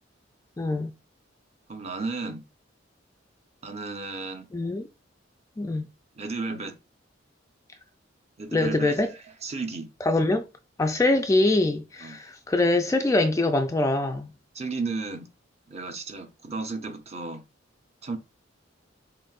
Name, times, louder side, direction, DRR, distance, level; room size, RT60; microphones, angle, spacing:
voice 1, 0.6-0.9 4.5-4.9 5.6-5.9 8.5-9.1 10.0-10.4 10.8-14.3, left 2 dB, 15° left, 0.3 m, -23 dB
voice 2, 1.7-2.4 3.6-4.5 6.2-6.7 8.4-9.0 9.4-9.9 12.0-12.2 14.5-15.3 15.7-17.4 18.0-18.2, right 3 dB, 35° right, 0.7 m, -33 dB
6.1 x 2.6 x 2.4 m
head